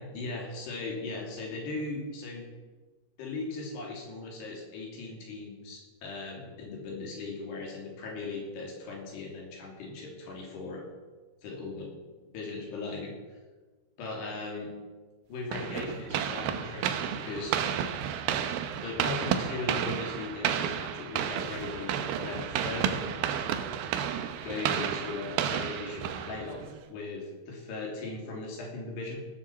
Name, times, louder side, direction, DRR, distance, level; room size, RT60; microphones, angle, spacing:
voice 1, 0.0-2.5 3.2-10.9 11.4-11.9 12.3-13.4 14.0-14.8 15.3-17.6 18.8-23.6 24.4-29.2, left 3 dB, 70° left, 0 dB, 4.9 m, -38 dB
sound 1, 15.5-26.8, right 9 dB, 75° right, 2.2 m, -31 dB
17.5 x 7.7 x 7.1 m, 1.3 s
omnidirectional pair, 4.9 m